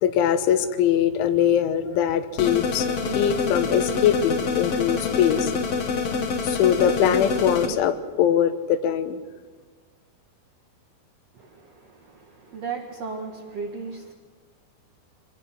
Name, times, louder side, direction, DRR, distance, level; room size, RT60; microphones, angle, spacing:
voice 1, 0.0-2.9 3.2-5.5 6.4-9.2, left 9 dB, 90° left, 11 dB, 3.5 m, -22 dB
sound 1, 2.4-7.7, left 5 dB, 55° left, 1.7 m, -26 dB
voice 2, 11.3-14.1, right 5 dB, 55° right, 1 dB, 1.9 m, -36 dB
25.0 x 20.5 x 6.0 m, 1.4 s
omnidirectional pair, 5.3 m